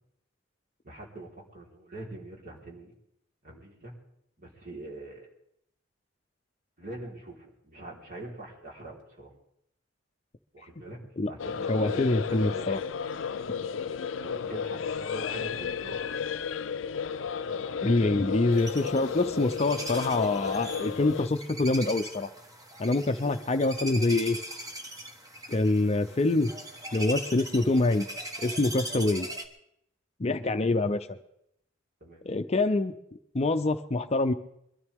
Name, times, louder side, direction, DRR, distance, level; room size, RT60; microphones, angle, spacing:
voice 1, 0.8-2.9 3.4-3.9 4.4-5.3 6.8-9.3 10.5-11.0 11.3-12.9 14.2-16.0 23.2-23.3 32.0-32.2, right 2 dB, 50° right, -3 dB, 4.0 m, -43 dB
sound 1, 11.4-21.3, left 6 dB, 75° left, 0.5 m, -33 dB
voice 2, 11.7-12.8 17.8-22.3 22.8-24.4 25.5-26.5 26.9-28.0 28.4-29.3 30.2-31.1 32.3-32.9 33.3-34.3, left 2 dB, 35° left, 9 dB, 0.6 m, -25 dB
sound 2, 18.5-29.5, right 1 dB, 20° right, 1.3 m, -40 dB
22.5 x 13.0 x 3.6 m, 0.75 s
head